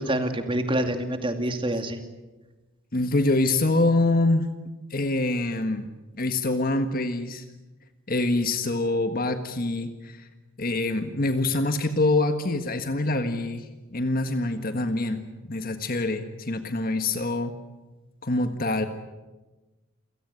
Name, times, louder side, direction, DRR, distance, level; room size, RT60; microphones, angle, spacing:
voice 1, 0.0-2.0, right 1 dB, 25° right, 6 dB, 2.5 m, -26 dB
voice 2, 2.9-4.5 4.9-5.9 6.2-7.4 8.1-10.3 10.6-17.5 18.2-18.9, left 2 dB, 45° left, 8 dB, 1.6 m, -25 dB
28.0 x 18.0 x 9.6 m, 1.2 s
head